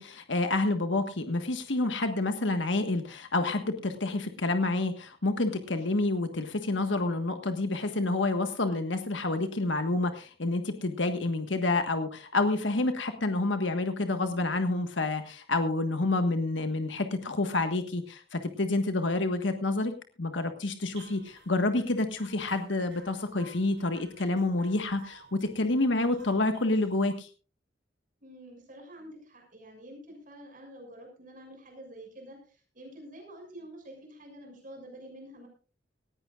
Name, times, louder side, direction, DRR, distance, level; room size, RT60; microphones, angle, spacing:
voice 1, 0.0-19.9 20.2-27.3, left 2 dB, 85° left, 7 dB, 1.5 m, -28 dB
sound 1, 20.9-27.0, right 3 dB, 75° right, 5.2 m, -55 dB
voice 2, 28.2-35.5, right 1 dB, 45° right, 2 dB, 6.4 m, -48 dB
19.0 x 16.0 x 2.5 m, 0.38 s
head